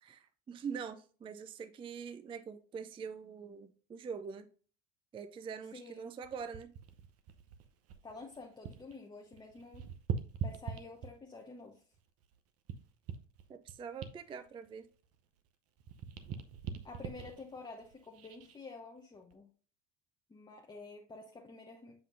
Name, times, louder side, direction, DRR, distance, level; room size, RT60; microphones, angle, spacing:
voice 1, 0.0-4.5 5.1-6.7 13.5-14.9, right 6 dB, 15° right, 0.4 m, -44 dB
voice 2, 5.7-6.1 8.0-9.9 10.4-11.8 16.8-19.5 20.3-22.0, left 3 dB, 15° left, 0.9 m, -49 dB
sound 1, 6.2-9.0 9.2-11.4 11.9-15.5 15.8-18.6 19.1-19.3, right 7 dB, 40° right, 0.8 m, -43 dB
7.4 x 5.6 x 2.6 m
figure-of-eight pair, 70°, 35 cm